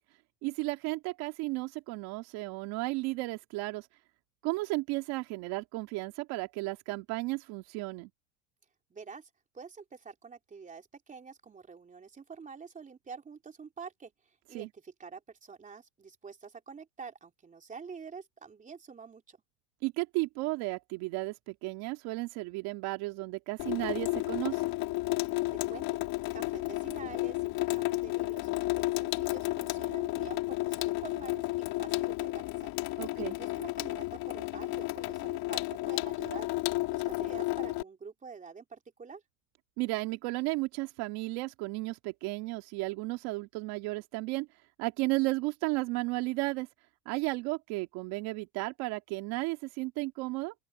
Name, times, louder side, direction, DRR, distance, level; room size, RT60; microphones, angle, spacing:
voice 1, 0.4-3.9 4.4-8.1 14.5-14.7 19.8-24.6 33.0-33.4 39.8-44.5 44.8-46.7 47.1-50.5, right 23 dB, 65° right, 2.2 m, -34 dB
voice 2, 8.9-9.3 9.5-14.1 14.5-19.4 25.7-26.0 26.3-36.5 36.9-39.2, right 5 dB, 20° right, 3.3 m, -47 dB
Water tap faucet / Sink (filling or washing), 23.6-37.8, left 20 dB, 60° left, 3.7 m, -32 dB
open air
cardioid pair, 145°, 41 cm